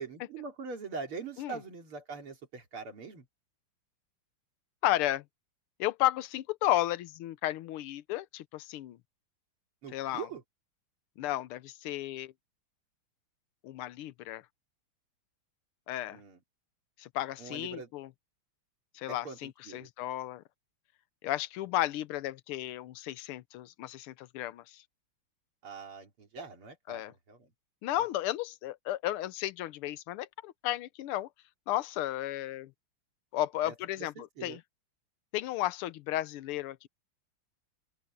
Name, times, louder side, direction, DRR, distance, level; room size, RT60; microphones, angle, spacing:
voice 1, 0.0-3.3 9.8-10.4 16.1-16.4 17.4-17.9 19.1-19.9 25.6-27.5 28.0-28.1 33.6-34.6, right 5 dB, 80° right, 4.0 m, -43 dB
voice 2, 4.8-5.2 5.8-9.0 9.9-10.3 11.2-12.3 13.6-14.4 15.9-16.2 17.0-18.1 19.0-20.4 21.2-24.8 26.9-27.1 27.8-31.3 31.7-32.7 33.3-34.6 35.3-36.9, left 14 dB, 85° left, 1.6 m, -33 dB
open air
omnidirectional pair, 2.4 m